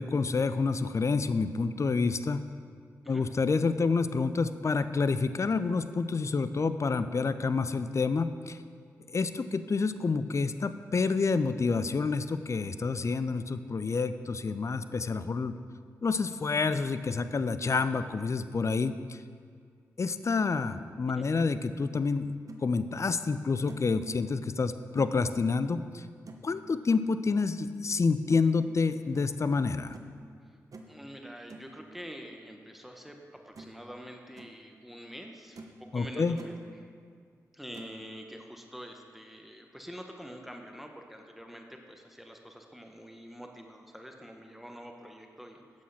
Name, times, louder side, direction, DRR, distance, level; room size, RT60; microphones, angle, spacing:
voice 1, 0.0-2.5 3.1-8.6 9.1-15.6 16.0-19.2 20.0-22.3 22.6-26.0 26.4-30.0 35.9-36.4, left 4 dB, 45° left, 12 dB, 0.5 m, -28 dB
sound 1, 22.5-22.6 23.2-23.3 23.7-24.0 25.0-25.2 26.3-26.5 28.3-28.4 29.1-29.4 29.9-30.2 30.7-31.0 31.5-31.7 33.1-33.2 33.5-33.8 34.2-34.5 35.1-35.2 35.6-35.8 36.1-36.6 37.7-38.0, right 3 dB, 55° right, 1.0 m, -48 dB
voice 2, 30.9-36.9 37.5-45.8, equal, ahead, 3 dB, 1.1 m, -46 dB
8.9 x 7.3 x 5.7 m, 2.1 s
supercardioid pair, 40°, 7 cm